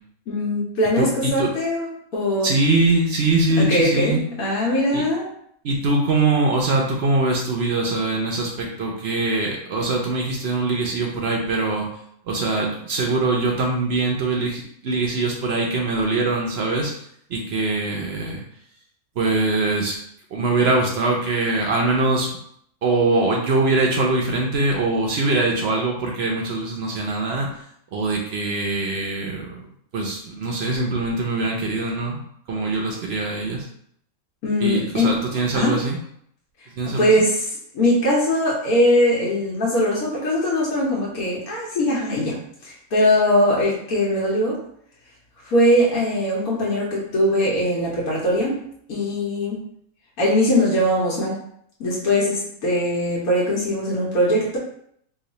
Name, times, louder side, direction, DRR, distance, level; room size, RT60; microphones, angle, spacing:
voice 1, 0.3-2.5 3.6-5.3 34.4-35.2 35.5-35.8 36.8-44.6 45.5-49.6 50.2-51.4 51.8-54.6, left 1 dB, 80° left, -5 dB, 1.3 m, -21 dB
voice 2, 1.0-1.5 2.4-4.2 4.9-5.1 5.6-11.9 12.3-16.9 17.3-18.4 19.2-20.0 20.3-22.3 22.8-27.5 27.9-29.5 29.9-32.2 32.5-33.7 34.6-36.0 36.8-37.3, right 2 dB, 65° right, 0 dB, 0.6 m, -22 dB
3.1 x 2.4 x 3.9 m, 0.69 s
omnidirectional pair, 1.5 m